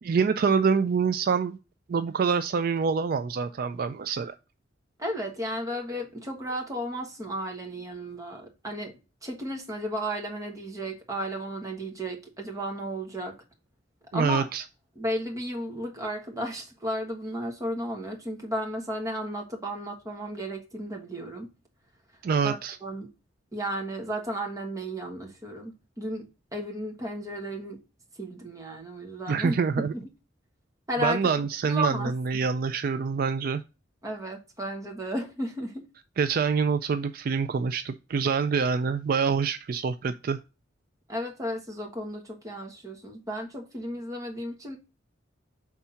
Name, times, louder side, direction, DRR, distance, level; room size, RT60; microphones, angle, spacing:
voice 1, 0.0-1.6 1.9-4.3 14.1-14.6 22.2-22.8 29.3-29.9 31.0-33.6 36.2-40.4, right 5 dB, 50° right, 0.3 m, -26 dB
voice 2, 5.0-8.9 9.2-13.3 14.1-14.4 14.9-21.5 22.4-23.1 23.5-26.2 26.5-27.8 28.2-29.6 29.9-30.0 30.9-31.2 31.6-32.1 34.0-35.9 41.1-44.8, equal, 20° right, 1.4 m, -33 dB
5.7 x 3.6 x 5.5 m
head